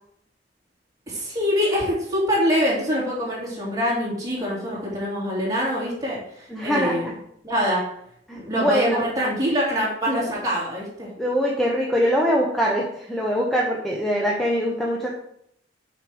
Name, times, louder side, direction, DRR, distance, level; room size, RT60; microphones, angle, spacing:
voice 1, 1.1-7.0 7.4-7.9 8.3-11.1, equal, 20° right, -5 dB, 2.7 m, -24 dB
voice 2, 6.5-7.1 8.3-9.0 11.2-15.1, equal, ahead, -2 dB, 0.8 m, -23 dB
6.4 x 5.1 x 4.7 m, 0.71 s
head